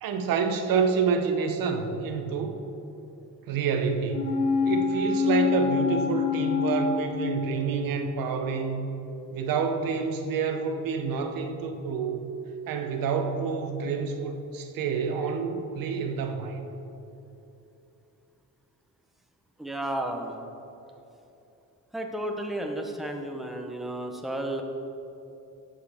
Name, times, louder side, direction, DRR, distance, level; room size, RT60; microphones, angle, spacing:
voice 1, 0.0-2.6 3.5-4.3 4.7-8.9 9.3-12.2 12.7-16.6, right 5 dB, 90° right, 5 dB, 0.9 m, -28 dB
sound 1, 4.1-7.9 8.2-8.3, left 5 dB, 60° left, 2.1 m, -26 dB
voice 2, 19.6-20.4 21.9-24.6, right 1 dB, ahead, 2 dB, 0.8 m, -32 dB
11.0 x 7.5 x 3.5 m, 2.9 s
cardioid pair, 115°, 33 cm